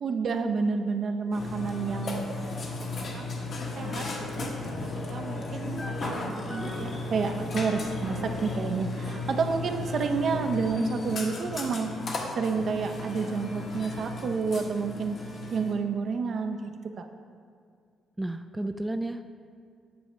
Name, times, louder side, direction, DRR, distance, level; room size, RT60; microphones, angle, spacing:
voice 1, 0.0-2.7 3.0-3.3 3.8-4.1 4.3-4.5 5.1-11.9 12.4-15.2 15.5-16.7 17.0-17.1, right 4 dB, 55° right, 6 dB, 0.6 m, -30 dB
Burping eructation, 1.3-15.7, left 2 dB, 55° left, 1.3 m, -35 dB
Piano, 3.7-10.6, left 2 dB, 40° left, 1.2 m, -43 dB
voice 2, 18.2-19.3, right 1 dB, 10° right, 7 dB, 0.3 m, -32 dB
9.5 x 7.0 x 3.3 m, 2.2 s
cardioid pair, 90°, 0 cm